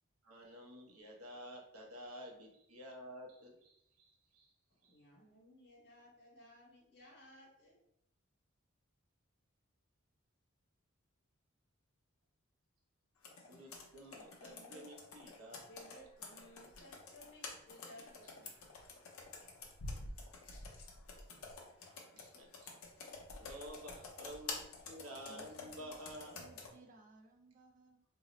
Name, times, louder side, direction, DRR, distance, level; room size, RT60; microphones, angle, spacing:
voice 1, 0.2-4.5 4.8-5.0 13.4-15.7 22.1-22.7 23.4-26.3, equal, 85° right, 0 dB, 0.7 m, -51 dB
voice 2, 4.7-7.8 14.4-14.9 15.6-18.1 22.6-22.7, left 1 dB, 50° left, -5 dB, 1.0 m, -59 dB
Computer keyboard, 13.2-26.7, left 3 dB, 75° left, 0.6 m, -49 dB
voice 3, 25.3-28.0, right 2 dB, 40° right, 2 dB, 0.5 m, -62 dB
2.7 x 2.0 x 3.8 m, 0.76 s
head